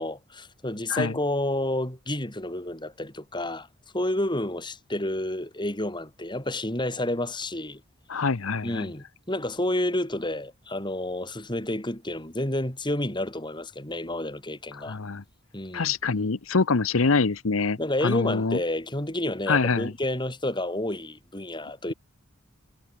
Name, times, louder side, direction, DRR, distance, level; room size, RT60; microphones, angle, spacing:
voice 1, 0.0-3.7 3.9-7.8 8.6-15.0 15.5-15.9 17.8-21.9, left 1 dB, 20° left, 5.5 m, -30 dB
voice 2, 8.1-8.9 14.7-15.2 15.7-18.6 19.5-19.9, left 4 dB, 90° left, 0.9 m, -25 dB
head